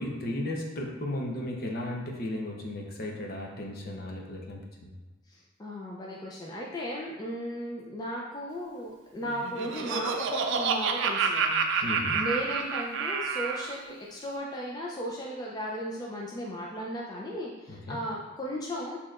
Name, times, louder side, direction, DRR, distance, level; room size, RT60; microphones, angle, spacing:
voice 1, 0.0-5.0 11.8-12.2 17.7-18.0, left 1 dB, 50° left, 0 dB, 0.7 m, -35 dB
voice 2, 5.3-19.0, equal, 20° left, -3 dB, 0.4 m, -36 dB
Laughter, 9.3-13.7, right 5 dB, 60° right, 0.4 m, -29 dB
6.4 x 2.9 x 2.4 m, 1.2 s
head